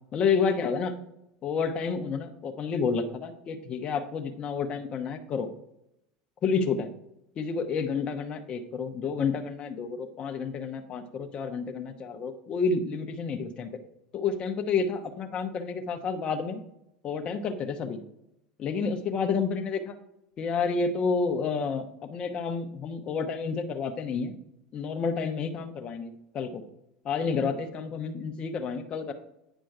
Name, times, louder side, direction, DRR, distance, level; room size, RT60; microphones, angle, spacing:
voice 1, 0.1-0.9 1.4-5.5 6.4-6.9 7.4-13.7 14.1-16.6 17.0-18.0 18.6-19.9 20.4-24.4 24.7-26.6 27.0-29.1, left 5 dB, 40° left, 5 dB, 1.0 m, -30 dB
9.1 x 5.1 x 4.8 m, 0.81 s
supercardioid pair, 105°, 3 cm